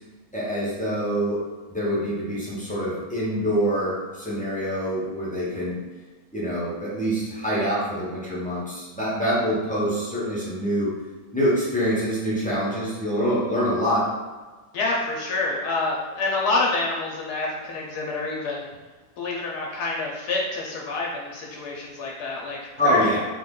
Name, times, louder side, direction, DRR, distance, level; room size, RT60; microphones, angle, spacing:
voice 1, 0.3-1.4 1.7-5.8 6.3-10.9 11.3-14.1 22.8-23.2, equal, 10° left, -8 dB, 0.4 m, -25 dB
voice 2, 14.7-18.7 19.2-23.2, left 3 dB, 90° left, -3 dB, 1.2 m, -27 dB
3.2 x 2.2 x 3.6 m, 1.3 s
omnidirectional pair, 1.6 m